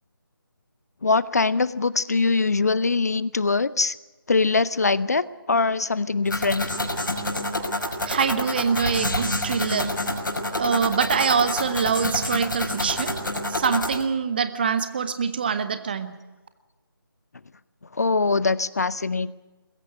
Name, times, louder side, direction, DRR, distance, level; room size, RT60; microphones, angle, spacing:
voice 1, 1.0-3.9 4.3-6.7 18.0-19.3, left 4 dB, 45° left, 19 dB, 0.6 m, -22 dB
sound 1, 6.3-14.0, left 1 dB, 60° left, 5.8 m, -28 dB
voice 2, 8.1-9.9 10.5-16.2, right 6 dB, 25° right, 11 dB, 1.1 m, -24 dB
21.5 x 16.0 x 9.7 m, 1.2 s
figure-of-eight pair, 155°, 12 cm